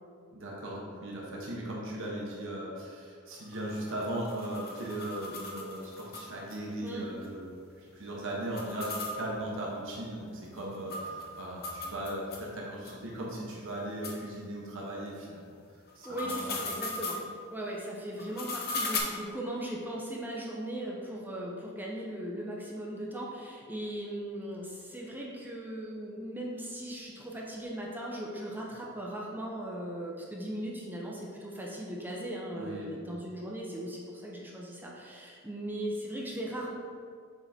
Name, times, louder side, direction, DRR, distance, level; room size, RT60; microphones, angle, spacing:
voice 1, 0.3-7.5 7.8-15.5 15.9-16.7 32.5-32.9, right 1 dB, 60° right, -3 dB, 1.1 m, -38 dB
sound 1, 3.3-6.6 6.9-7.0 7.2-7.3 8.4-12.5 12.9-13.0 13.5-13.6 14.0-14.2 15.9-17.3 18.2-19.0, left 3 dB, 45° left, 0.8 m, -38 dB
voice 2, 16.0-17.2 17.5-36.7, right 1 dB, 10° right, -3 dB, 0.7 m, -38 dB
7.0 x 3.7 x 4.2 m, 2.2 s
head